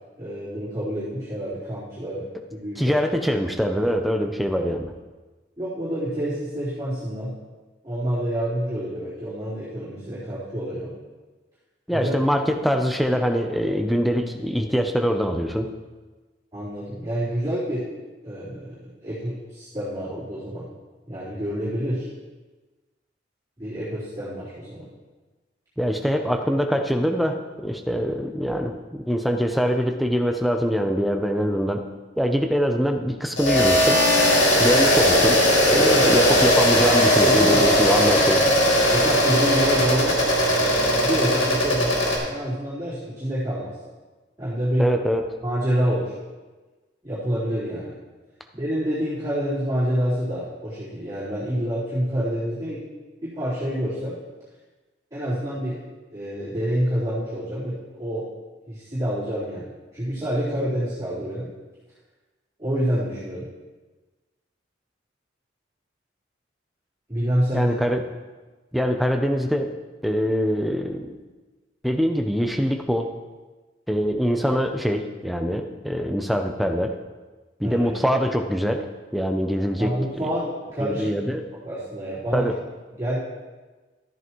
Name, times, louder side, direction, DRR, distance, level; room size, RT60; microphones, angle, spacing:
voice 1, 0.2-2.9 4.5-4.6 5.6-7.3 7.8-10.9 11.9-12.1 16.5-17.8 18.2-20.7 21.1-22.1 23.6-24.9 35.7-36.5 37.0-37.7 38.9-40.2 40.6-41.9 42.3-43.7 44.4-44.9 45.4-46.1 47.0-47.9 48.5-52.8 53.2-54.2 55.1-55.8 56.1-58.2 58.7-61.5 62.6-63.5 67.1-67.8 77.6-77.9 79.8-81.3 81.6-82.5 83.0-83.2, equal, 20° right, -15 dB, 3.9 m, -27 dB
voice 2, 2.8-4.9 11.9-15.7 25.8-31.8 32.2-34.0 34.6-35.4 35.7-38.4 44.8-45.4 67.5-68.0 68.7-69.7 70.0-71.1 71.8-73.1 73.9-76.9 77.6-78.9 79.1-79.9 80.2-80.3 80.8-81.4 82.3-82.5, equal, ahead, 4 dB, 0.6 m, -23 dB
sound 1, 33.4-42.2, equal, 80° left, 2.5 m, -19 dB
13.5 x 9.5 x 3.1 m, 1.3 s
head